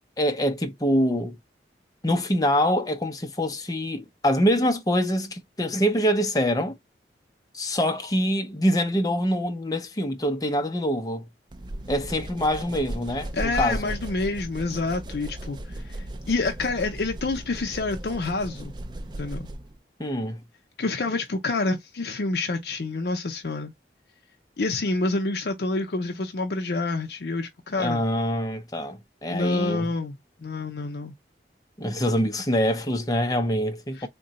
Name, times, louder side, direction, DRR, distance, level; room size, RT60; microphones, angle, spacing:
voice 1, 0.2-1.4 2.0-6.7 7.5-11.3 11.9-13.9 20.0-20.4 27.8-29.9 31.8-34.1, equal, 20° left, 0.6 m, -25 dB
sound 1, 11.5-19.8, right 1 dB, 25° right, 0.3 m, -36 dB
voice 2, 13.3-18.7 19.2-19.5 20.8-23.7 24.6-28.0 29.3-31.1 34.0-34.1, left 3 dB, 65° left, 0.5 m, -28 dB
3.7 x 2.2 x 4.0 m
head